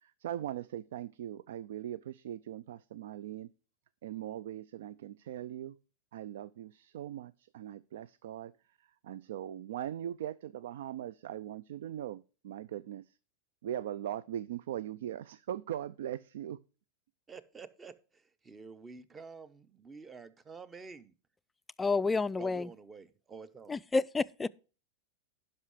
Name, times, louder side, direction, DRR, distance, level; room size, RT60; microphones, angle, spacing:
voice 1, 0.0-3.5 4.0-5.8 6.1-8.5 9.0-13.1 13.6-16.6, right 11 dB, 75° right, 0.3 m, -40 dB
voice 2, 17.3-21.1 22.4-23.8, right 5 dB, 20° right, 0.8 m, -49 dB
voice 3, 21.8-22.7 23.7-24.5, left 3 dB, 15° left, 0.3 m, -30 dB
11.0 x 5.5 x 4.9 m
hypercardioid pair, 105°, 0 cm